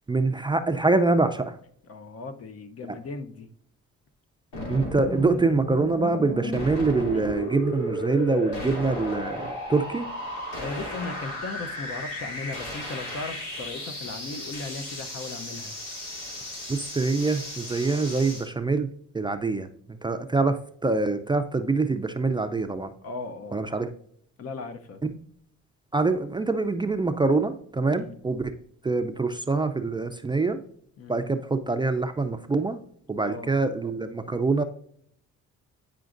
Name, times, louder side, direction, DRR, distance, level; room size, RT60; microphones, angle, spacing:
voice 1, 0.1-1.6 4.7-10.1 16.7-18.9 19.1-19.7 20.0-22.9 23.5-23.9 25.0-25.1 25.9-28.6 28.8-30.6 31.1-32.8 33.1-34.6, right 3 dB, 15° right, 8 dB, 0.4 m, -25 dB
voice 2, 1.8-3.5 5.3-5.4 7.1-7.3 10.6-15.7 23.0-23.6 24.4-25.0 27.9-28.2 31.0-31.2 33.2-33.5, left 3 dB, 50° left, 9 dB, 0.7 m, -37 dB
sound 1, 4.5-18.5, left 1 dB, 90° left, 2.8 m, -34 dB
9.2 x 5.0 x 2.5 m, 0.66 s
cardioid pair, 90°, 30 cm